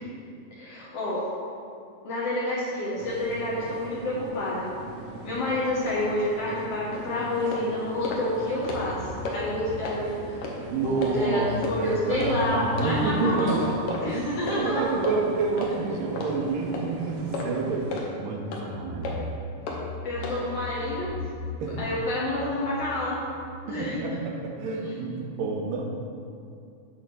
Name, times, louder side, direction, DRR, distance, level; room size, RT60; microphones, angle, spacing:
voice 1, 0.5-1.3 2.0-4.7 5.2-10.5 10.8-13.7 14.0-14.9 20.0-21.1 21.8-23.2 23.6-24.0, left 1 dB, 65° left, -6 dB, 1.6 m, -28 dB
sound 1, 3.0-18.0, right 3 dB, 70° right, 1.9 m, -41 dB
sound 2, 6.9-7.0 7.5-7.6 8.0-8.2 8.5-8.9 9.2-9.4 9.8-10.0 10.4-10.5 11.0-11.1 11.6-11.8 12.2-12.3 12.8-12.9 13.3-13.5 13.9-14.0 14.5-14.6 15.0-15.2 15.6-15.7 16.2-16.3 16.7-16.9 17.3-17.5 17.9-18.1 18.5-18.6 19.0-19.2 19.7-19.8 20.2-20.4, left 3 dB, 90° left, 1.2 m, -33 dB
sound 3, 8.2-16.5 16.9-17.0 18.7-23.4, left 2 dB, 40° right, 0.8 m, -40 dB
voice 2, 10.7-17.9 18.2-19.2 21.6-21.9 23.7-25.9, right 3 dB, 85° right, 0 dB, 2.5 m, -29 dB
7.6 x 4.2 x 6.1 m, 2.4 s
omnidirectional pair, 3.8 m